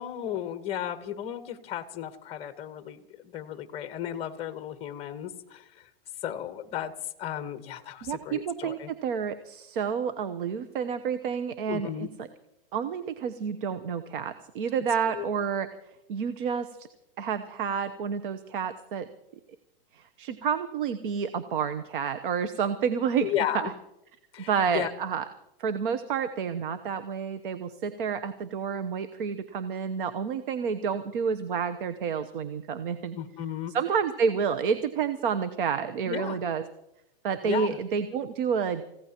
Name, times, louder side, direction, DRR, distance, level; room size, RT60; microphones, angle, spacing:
voice 1, 0.0-5.6 6.2-6.9 7.2-8.9 11.7-12.1 15.1-15.3 23.2-23.7 24.3-24.9 33.1-33.8 36.0-36.4 37.4-37.8, left 10 dB, 20° left, 9 dB, 1.2 m, -34 dB
voice 2, 8.0-12.3 12.7-15.7 16.1-16.9 17.2-19.1 19.9-23.3 23.5-23.7 24.5-25.2 25.6-33.2 33.7-36.6 37.2-38.8, right 6 dB, 60° right, 10 dB, 1.0 m, -29 dB
29.5 x 16.0 x 2.9 m, 0.85 s
supercardioid pair, 155°, 29 cm